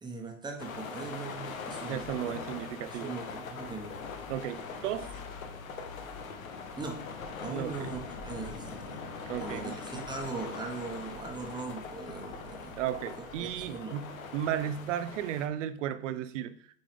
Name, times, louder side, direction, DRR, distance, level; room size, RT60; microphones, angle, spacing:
voice 1, 0.0-2.0 2.9-4.0 6.8-7.0 7.4-9.1 9.4-12.8 13.2-14.0, right 4 dB, 10° right, 2 dB, 1.1 m, -40 dB
sound 1, 0.6-15.5, left 5 dB, 80° left, 1.1 m, -42 dB
voice 2, 1.9-3.1 4.3-5.1 7.5-7.9 9.3-9.8 12.8-16.6, right 10 dB, 60° right, 12 dB, 0.7 m, -34 dB
sound 2, 4.7-13.7, left 1 dB, 25° left, 1.2 m, -52 dB
7.7 x 3.8 x 3.3 m, 0.65 s
hypercardioid pair, 115°, 41 cm